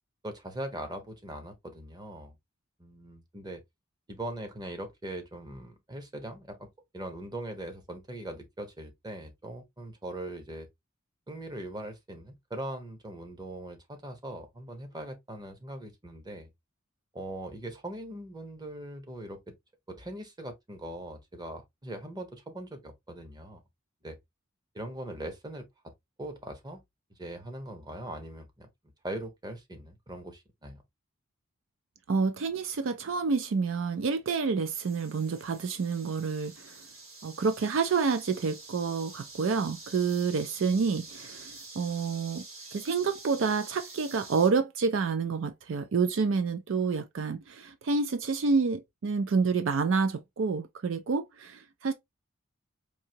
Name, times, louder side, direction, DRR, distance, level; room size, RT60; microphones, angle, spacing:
voice 1, 0.2-2.3 2.8-3.6 4.1-6.7 6.9-10.7 11.3-16.5 17.1-19.5 19.9-23.6 24.0-24.2 24.7-25.9 26.2-26.8 27.2-28.7 29.0-30.8, right 1 dB, 20° right, 0.9 m, -41 dB
voice 2, 32.1-36.8 37.2-42.4 42.7-51.9, right 5 dB, 65° right, 0.4 m, -28 dB
sound 1, 34.6-44.5, right 3 dB, 85° right, 2.1 m, -48 dB
4.7 x 2.7 x 2.7 m
head